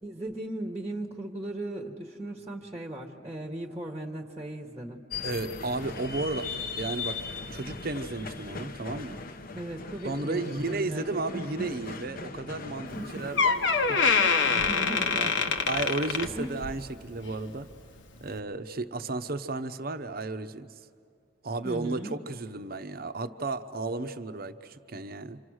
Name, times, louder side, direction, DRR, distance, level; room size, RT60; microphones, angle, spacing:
voice 1, 0.0-5.0 9.5-11.7 12.9-13.3 14.5-15.5 16.3-16.6 21.6-22.1, right 1 dB, 15° right, 2 dB, 1.2 m, -37 dB
sound 1, 5.1-16.7, left 4 dB, 50° left, 0.9 m, -40 dB
voice 2, 5.2-6.5 6.8-7.2 7.5-9.2 10.0-14.5 15.2-15.3 15.7-17.7 18.2-20.7 21.4-25.4, right 2 dB, 50° right, 9 dB, 0.8 m, -33 dB
Door, 12.9-13.0 13.4-16.9 17.2-17.5 18.2-18.3, left 5 dB, 70° left, 1.2 m, -25 dB
27.5 x 26.5 x 6.4 m, 2.3 s
head